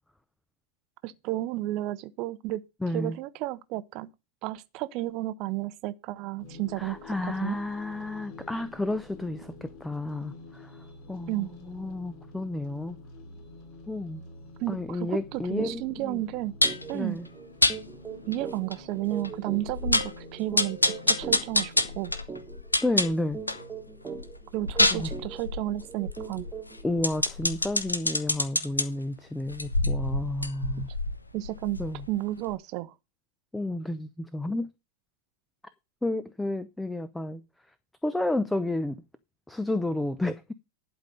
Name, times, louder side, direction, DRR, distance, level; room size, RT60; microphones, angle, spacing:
voice 1, 1.0-2.6 2.9-4.1 4.4-7.0 7.2-7.6 11.3-11.5 14.6-16.5 16.9-17.2 18.3-22.1 24.5-26.5 31.3-31.8 32.1-32.9, right 16 dB, 40° right, 0.8 m, -32 dB
voice 2, 2.8-3.2 6.8-13.0 13.9-14.2 14.7-16.2 16.9-17.3 22.8-23.4 24.9-25.1 26.8-30.9 31.8-32.1 33.5-34.7 36.0-37.4 38.0-39.0 39.5-40.5, left 2 dB, 5° left, 0.7 m, -31 dB
sound 1, 6.4-22.0, left 2 dB, 45° left, 3.4 m, -48 dB
sound 2, 15.6-15.8 16.1-16.3 16.6-26.9, right 5 dB, 20° right, 1.7 m, -41 dB
sound 3, 16.6-16.9 17.6-17.8 18.3-18.4 18.7-18.8 19.2-19.3 19.7-20.2 20.6-23.7 24.1-28.8 29.5-32.2 32.5-32.6, left 2 dB, 85° left, 1.0 m, -27 dB
11.5 x 5.3 x 6.7 m
figure-of-eight pair, 90°, 0 cm